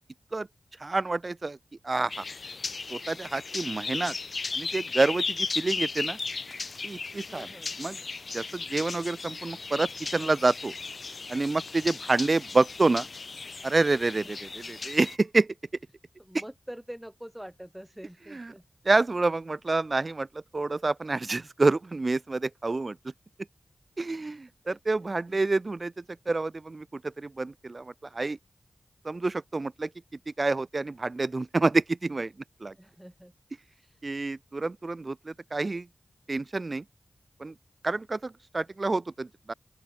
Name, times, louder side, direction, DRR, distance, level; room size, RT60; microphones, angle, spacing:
voice 1, 0.8-1.6 1.8-2.2 2.9-4.1 4.5-6.2 6.8-7.5 7.8-8.0 8.3-10.7 11.3-13.1 13.6-15.5 18.3-18.5 18.8-23.0 24.0-25.9 26.3-28.4 29.0-29.9 30.3-32.3 32.6-32.7 34.0-35.9 36.3-36.8 37.4-37.5 37.8-39.5, right 3 dB, 45° right, 0.9 m, -28 dB
sound 1, 2.1-15.2, left 4 dB, 60° left, 1.1 m, -36 dB
voice 2, 7.3-7.8 14.2-14.4 16.2-18.6 24.6-24.8 25.3-25.4 32.8-33.3 33.7-34.0, equal, 5° right, 5.3 m, -45 dB
open air
cardioid pair, 55°, 0 cm